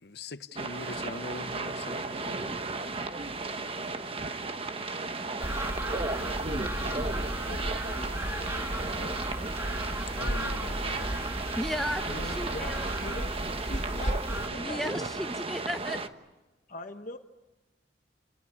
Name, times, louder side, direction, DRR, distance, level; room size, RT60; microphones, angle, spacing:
voice 1, 0.0-2.5 10.1-11.3, left 3 dB, 65° left, 0.9 m, -42 dB
sound 1, 0.6-16.1, right 3 dB, 35° right, 1.2 m, -35 dB
sound 2, 5.4-14.5, right 1 dB, 15° right, 1.5 m, -34 dB
voice 2, 6.2-7.1 7.5-9.2 11.8-15.2 16.7-17.2, left 2 dB, 45° left, 1.2 m, -43 dB
voice 3, 11.6-12.9 14.5-16.0, equal, ahead, 0.9 m, -34 dB
30.0 x 19.5 x 9.7 m
head